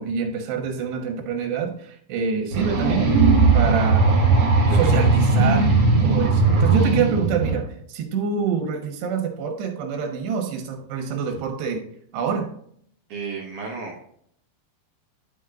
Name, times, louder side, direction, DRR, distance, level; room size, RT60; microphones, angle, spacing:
voice 1, 0.0-3.1 3.5-4.2 4.7-5.7 6.0-11.9 12.1-12.5, right 6 dB, 80° right, 4 dB, 3.3 m, -26 dB
sound 1, 2.5-7.5, right 3 dB, 50° right, 1.5 m, -18 dB
voice 2, 13.1-14.0, right 4 dB, 65° right, -2 dB, 2.1 m, -33 dB
11.0 x 6.3 x 2.4 m, 0.65 s
omnidirectional pair, 4.8 m